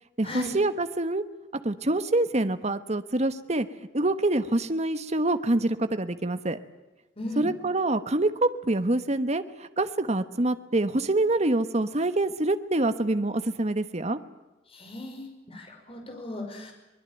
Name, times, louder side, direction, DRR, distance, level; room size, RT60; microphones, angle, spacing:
voice 1, 0.2-1.2 1.6-3.7 3.9-6.6 7.4-14.2, right 2 dB, 40° right, 11 dB, 1.2 m, -26 dB
voice 2, 7.2-7.5 14.7-16.7, left 1 dB, 30° left, 3 dB, 5.8 m, -37 dB
23.5 x 21.0 x 9.1 m, 1.1 s
head